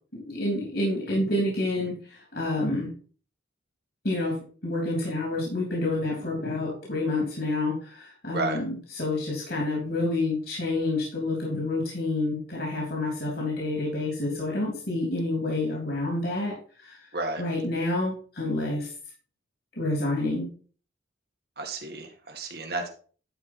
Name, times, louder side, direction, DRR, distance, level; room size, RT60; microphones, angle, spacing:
voice 1, 0.3-2.9 4.0-17.1 17.4-18.9 19.8-20.5, left 2 dB, 65° left, -2 dB, 3.3 m, -28 dB
voice 2, 21.6-22.9, right 3 dB, 60° right, 3 dB, 2.1 m, -32 dB
11.0 x 4.8 x 4.5 m, 0.41 s
head